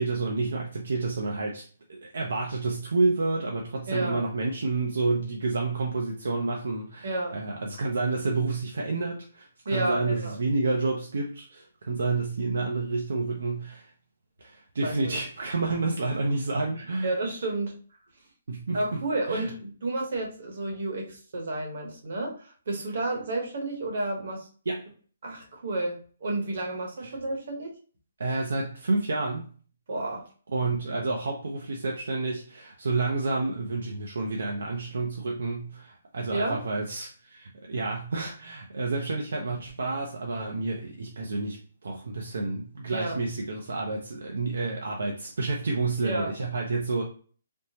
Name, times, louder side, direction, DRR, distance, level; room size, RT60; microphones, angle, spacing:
voice 1, 0.0-1.6 1.9-13.9 14.4-17.1 18.5-19.0 19.3-19.5 24.7-24.8 27.0-27.1 28.2-29.5 30.5-47.0, right 3 dB, 80° right, 0 dB, 0.5 m, -29 dB
voice 2, 3.9-4.2 7.0-7.4 9.6-10.4 14.8-15.2 16.8-17.8 18.7-24.5 25.2-27.7 29.9-30.2 36.3-36.6 42.9-43.2 46.0-46.3, right 2 dB, 60° right, 1 dB, 1.0 m, -31 dB
3.5 x 2.0 x 2.8 m, 0.42 s
hypercardioid pair, 160°, 0 cm